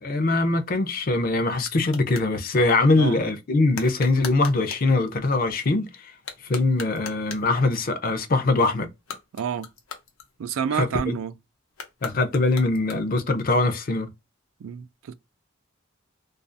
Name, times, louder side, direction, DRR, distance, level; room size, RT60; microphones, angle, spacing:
voice 1, 0.0-6.1 6.4-8.9 10.7-11.2 12.0-14.1, left 2 dB, 45° left, 0.5 m, -22 dB
sound 1, 0.7-2.3 3.7-4.9 6.1-7.6 8.9-10.7 11.7-13.3, left 6 dB, 85° left, 0.7 m, -40 dB
voice 2, 9.3-9.7 10.4-11.3 14.6-15.1, right 7 dB, 85° right, 0.3 m, -29 dB
2.4 x 2.3 x 2.5 m
head